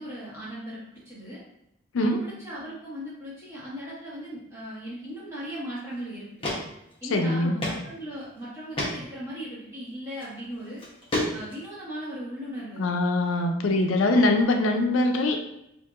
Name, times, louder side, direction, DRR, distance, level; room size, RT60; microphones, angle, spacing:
voice 1, 0.0-1.4 2.0-6.3 7.0-10.8 11.3-13.0, equal, 15° right, -8 dB, 1.3 m, -38 dB
sound 1, 5.8-5.9 6.4-6.6 6.9-7.0 7.6-7.8 8.2-8.3 8.7-8.9 10.1-10.2 10.8-11.6, left 1 dB, 25° left, 0.8 m, -29 dB
voice 2, 7.1-7.6 12.8-15.4, left 2 dB, 85° left, 5 dB, 0.4 m, -23 dB
4.4 x 2.6 x 2.4 m, 0.82 s
head